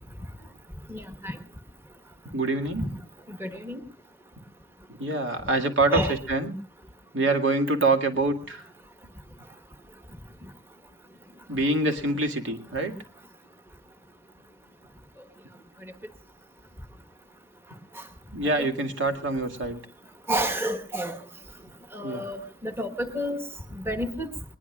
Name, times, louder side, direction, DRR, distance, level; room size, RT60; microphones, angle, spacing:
voice 1, 0.9-1.4 2.8-2.9 3.3-3.8 5.9-6.2 18.5-18.7 20.3-21.2 21.9-23.4 23.7-24.3, equal, 15° right, 7 dB, 1.3 m, -30 dB
voice 2, 2.3-3.0 5.0-6.5 7.1-8.6 11.5-12.9 18.3-19.8 22.0-22.2, right 2 dB, 90° right, 4 dB, 2.2 m, -25 dB
20.5 x 20.5 x 2.4 m, 0.34 s
head